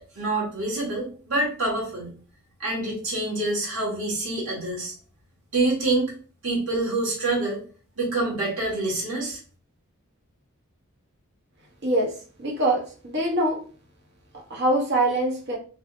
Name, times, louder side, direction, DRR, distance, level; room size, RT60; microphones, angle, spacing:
voice 1, 0.1-2.1 2.6-4.9 5.5-6.1 6.4-7.6 8.0-9.4, right 2 dB, 70° right, -5 dB, 1.6 m, -26 dB
voice 2, 11.8-12.1 12.4-13.6 14.5-15.6, right 1 dB, 50° right, -1 dB, 0.9 m, -23 dB
3.3 x 2.7 x 2.5 m, 0.39 s
head